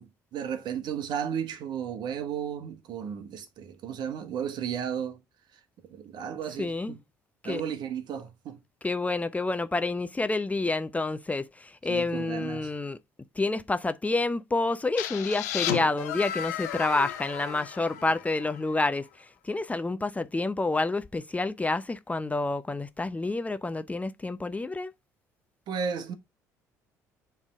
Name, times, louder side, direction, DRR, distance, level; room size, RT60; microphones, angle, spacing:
voice 1, 0.0-5.2 5.5-7.0 7.4-8.6 11.9-12.7 25.7-26.1, right 8 dB, 55° right, 1.1 m, -34 dB
voice 2, 6.6-6.9 7.4-7.6 8.8-13.0 13.4-24.9, left 2 dB, 15° left, 0.6 m, -29 dB
sound 1, 15.0-18.7, left 11 dB, 80° left, 0.7 m, -34 dB
7.2 x 3.5 x 4.4 m
hypercardioid pair, 55°, 9 cm